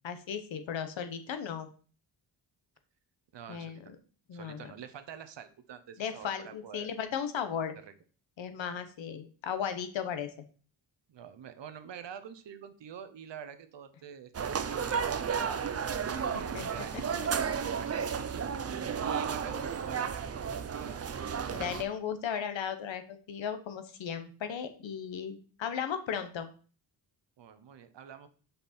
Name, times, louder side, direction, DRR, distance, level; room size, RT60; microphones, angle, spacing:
voice 1, 0.0-1.7 3.5-3.8 4.3-4.7 6.0-7.8 8.4-10.4 16.3-16.7 17.1-17.3 21.5-26.5, left 8 dB, 90° left, 9 dB, 1.0 m, -36 dB
voice 2, 3.3-3.9 4.3-6.9 7.8-7.9 11.1-18.4 19.0-21.1 27.4-28.3, right 8 dB, 70° right, 11 dB, 0.9 m, -47 dB
sound 1, 14.3-21.8, right 7 dB, 35° right, 0.5 m, -33 dB
6.0 x 5.3 x 4.3 m, 0.40 s
wide cardioid pair, 110°, 45 cm